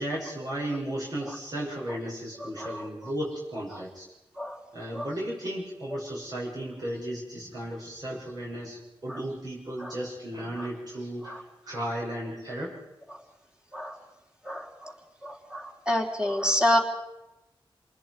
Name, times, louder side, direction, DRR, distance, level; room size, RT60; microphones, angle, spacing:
voice 1, 0.0-4.1 4.7-12.8, right 1 dB, 45° right, -6 dB, 6.8 m, -35 dB
voice 2, 2.4-3.1 3.7-3.8 4.4-4.6 4.9-5.1 9.1-9.2 9.8-9.9 10.6-10.7 11.2-11.4 13.1-13.2 13.7-14.0 14.4-14.9 15.2-16.8, left 1 dB, 10° right, 1 dB, 3.3 m, -29 dB
28.0 x 20.0 x 4.8 m, 0.96 s
wide cardioid pair, 75°, 9 cm